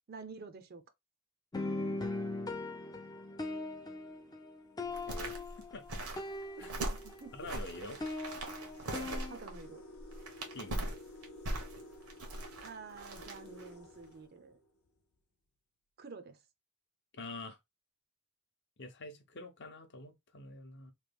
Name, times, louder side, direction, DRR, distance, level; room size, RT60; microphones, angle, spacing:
voice 1, 0.1-0.8 6.6-7.3 7.8-7.9 8.9-9.8 12.6-14.6 16.0-16.4, right 4 dB, 45° right, 0.5 m, -49 dB
sound 1, 1.5-7.3 7.6-9.4, left 2 dB, 15° left, 0.4 m, -40 dB
sound 2, 3.5-3.8 4.6-4.7 5.2-14.9, left 2 dB, 85° left, 0.8 m, -54 dB
sound 3, 4.9-13.7 14.0-14.1, right 1 dB, 90° right, 1.1 m, -41 dB
voice 2, 7.3-8.0 10.5-11.0 17.1-17.6 18.8-20.9, left 2 dB, 50° left, 0.7 m, -46 dB
3.1 x 2.3 x 3.4 m
head